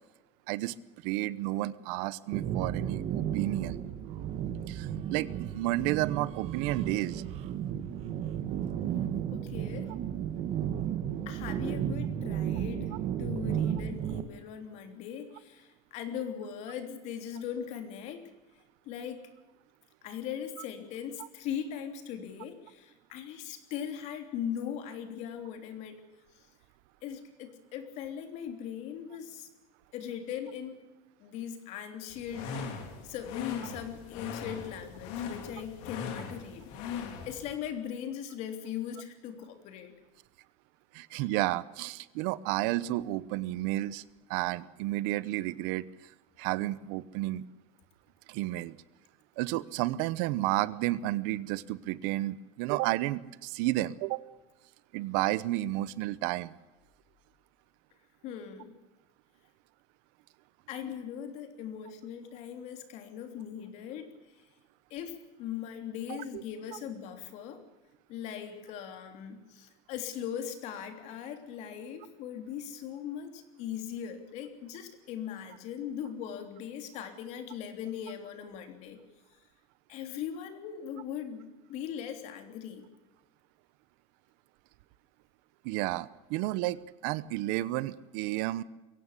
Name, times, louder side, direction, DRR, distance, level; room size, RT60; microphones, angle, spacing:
voice 1, 1.0-3.8 4.7-7.2 40.9-44.0 44.3-46.1 46.4-47.5 48.3-48.8 49.4-54.2 54.9-56.5 85.6-88.6, right 17 dB, 75° right, 18 dB, 0.9 m, -31 dB
sound 1, 2.3-14.2, right 9 dB, 45° right, 1.5 m, -33 dB
voice 2, 9.3-9.9 11.2-18.3 18.8-19.2 20.0-26.0 26.3-26.5 27.0-29.5 29.9-30.8 31.2-32.6 33.0-39.9 58.2-58.7 60.7-64.1 64.9-67.6 68.1-79.0 79.9-82.8, left 9 dB, 55° left, 7 dB, 3.3 m, -40 dB
sound 2, 32.1-37.5, left 6 dB, 85° left, 3.6 m, -39 dB
23.0 x 17.0 x 8.4 m, 1.1 s
cardioid pair, 165°, 14 cm